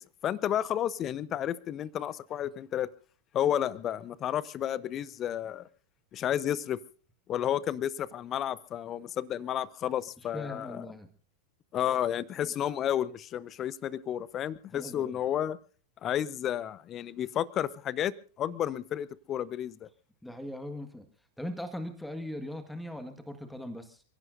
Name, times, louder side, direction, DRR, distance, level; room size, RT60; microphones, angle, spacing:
voice 1, 0.2-2.9 3.3-5.7 6.1-6.8 7.3-10.8 11.7-15.6 16.0-18.1 18.4-19.9, left 10 dB, 30° left, 21 dB, 0.8 m, -31 dB
voice 2, 10.3-11.1 14.7-15.2 20.2-21.1 21.4-24.0, left 1 dB, 5° left, 8 dB, 1.7 m, -39 dB
30.0 x 16.5 x 2.6 m, 0.41 s
figure-of-eight pair, 90°, 0 cm